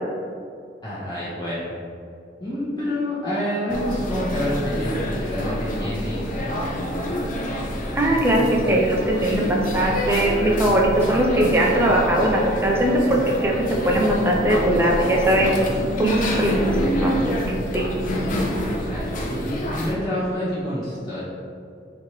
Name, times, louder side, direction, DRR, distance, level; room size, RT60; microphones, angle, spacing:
voice 1, 0.8-1.7 2.4-7.3 18.9-21.2, left 1 dB, 25° left, -10 dB, 1.4 m, -28 dB
sound 1, 3.7-19.9, equal, 45° left, 0.6 m, -27 dB
voice 2, 8.0-13.5 13.8-15.5 16.0-17.3 17.7-17.9, right 1 dB, 15° right, -2 dB, 0.6 m, -20 dB
5.5 x 2.9 x 3.2 m, 2.4 s
head